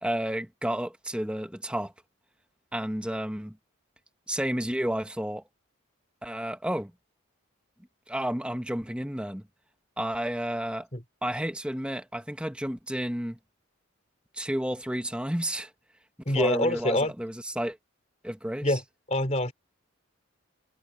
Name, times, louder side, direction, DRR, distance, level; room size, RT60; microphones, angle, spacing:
voice 1, 0.0-1.9 2.7-3.6 4.3-5.4 6.2-6.9 8.1-9.4 10.0-10.9 11.2-13.4 14.3-15.7 16.3-17.8 18.2-18.8, equal, 5° right, 1.3 m, -31 dB
voice 2, 16.3-17.1 18.6-18.8 19.1-19.5, left 1 dB, 30° left, 3.4 m, -25 dB
head